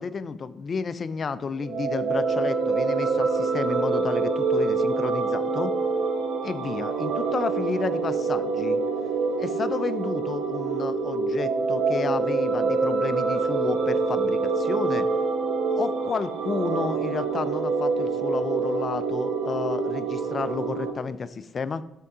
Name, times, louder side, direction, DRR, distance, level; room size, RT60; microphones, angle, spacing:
voice 1, 0.0-5.7 6.4-8.8 9.4-15.1 15.7-21.8, left 5 dB, 45° left, 14 dB, 0.4 m, -31 dB
sound 1, 1.6-20.9, right 4 dB, 80° right, 0.9 m, -26 dB
6.8 x 3.7 x 4.8 m, 0.85 s
cardioid pair, 90°, 0 cm